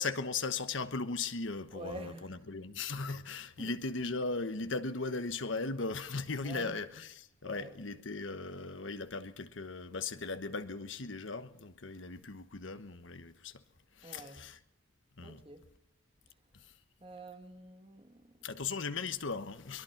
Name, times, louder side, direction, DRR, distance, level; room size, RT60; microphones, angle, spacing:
voice 1, 0.0-13.6 14.0-14.6 15.2-15.4 16.5-16.7 18.4-19.8, left 4 dB, 70° left, 1.1 m, -38 dB
voice 2, 1.7-2.4 3.6-3.7 6.4-6.8 7.4-7.8 14.0-14.4 15.2-15.7 17.0-18.4, right 1 dB, 25° right, 1.8 m, -47 dB
22.5 x 20.5 x 5.9 m
head